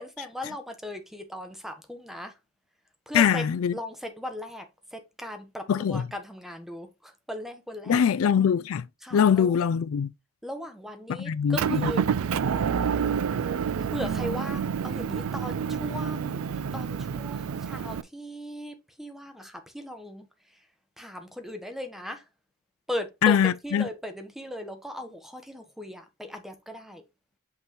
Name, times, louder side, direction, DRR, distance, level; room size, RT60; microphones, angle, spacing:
voice 1, 0.0-2.4 3.1-3.4 3.7-8.0 9.0-9.6 10.4-12.1 13.8-20.7 21.0-22.3 22.9-27.0, left 1 dB, ahead, 1.1 m, -38 dB
voice 2, 3.1-3.7 5.7-6.0 7.9-8.8 9.1-10.1 11.2-11.8 23.2-23.9, left 8 dB, 70° left, 0.4 m, -22 dB
Motor vehicle (road) / Engine, 11.5-18.0, right 7 dB, 80° right, 0.4 m, -28 dB
5.8 x 5.5 x 3.0 m
head